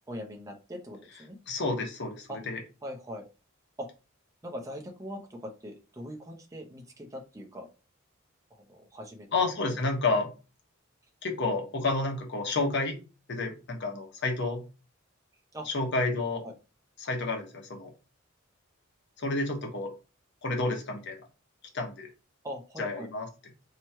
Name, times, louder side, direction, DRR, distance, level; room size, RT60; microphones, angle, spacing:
voice 1, 0.1-1.4 2.3-2.4 2.8-3.2 3.8-3.9 4.4-7.7 8.7-9.3 15.5-15.7 16.4-16.5 22.4-23.1, equal, 15° right, 1 dB, 0.7 m, -41 dB
voice 2, 1.5-2.6 9.3-10.3 11.2-12.9 13.3-14.6 15.6-16.4 17.0-17.9 19.2-19.9 20.4-21.2 21.7-22.1 22.8-23.3, left 3 dB, 60° left, 2 dB, 1.1 m, -30 dB
3.0 x 2.9 x 4.5 m, 0.31 s
head